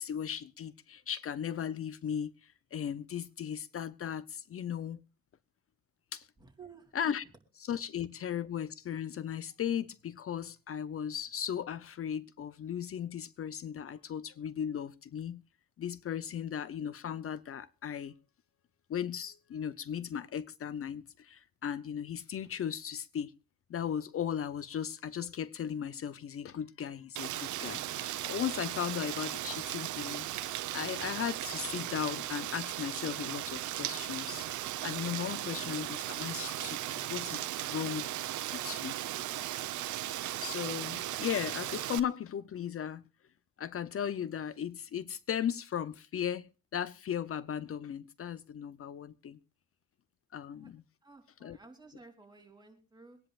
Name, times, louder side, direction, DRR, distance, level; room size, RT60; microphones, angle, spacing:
voice 1, 0.0-5.0 6.1-6.3 6.9-7.2 7.6-15.4 15.8-18.1 18.9-23.3 23.7-30.3 30.7-34.5 34.8-38.1 38.5-38.9 40.4-43.1 43.6-49.4 50.3-50.8 51.4-51.6, left 9 dB, 50° left, 0.7 m, -37 dB
voice 2, 6.4-6.9 35.5-35.7 50.5-50.7 51.0-53.2, right 4 dB, 15° right, 3.0 m, -54 dB
Rain, 27.2-42.0, right 14 dB, 75° right, 0.8 m, -37 dB
24.5 x 10.5 x 2.4 m
cardioid pair, 90°, 30 cm